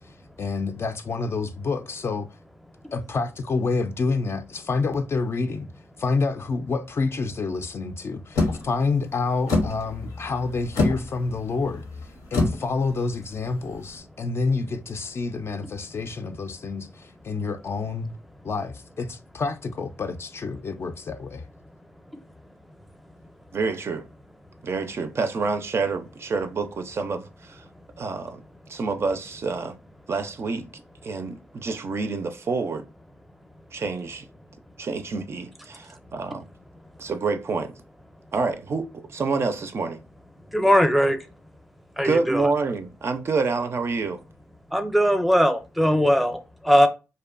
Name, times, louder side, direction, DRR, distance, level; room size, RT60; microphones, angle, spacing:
voice 1, 0.4-2.3 2.9-5.7 6.0-11.9 12.3-18.1 18.4-21.4, left 4 dB, 45° left, 0.4 m, -28 dB
sound 1, 8.4-14.0, left 2 dB, 85° left, 0.7 m, -28 dB
voice 2, 23.5-24.1 24.6-27.6 28.0-28.4 28.7-29.8 30.1-32.8 33.7-34.3 34.8-36.4 37.0-37.7 38.3-40.0 42.0-44.2, right 4 dB, 50° right, 0.4 m, -28 dB
voice 3, 40.5-41.2 42.0-42.5 44.7-46.9, equal, ahead, 0.6 m, -20 dB
2.6 x 2.1 x 2.4 m
supercardioid pair, 50°, 6 cm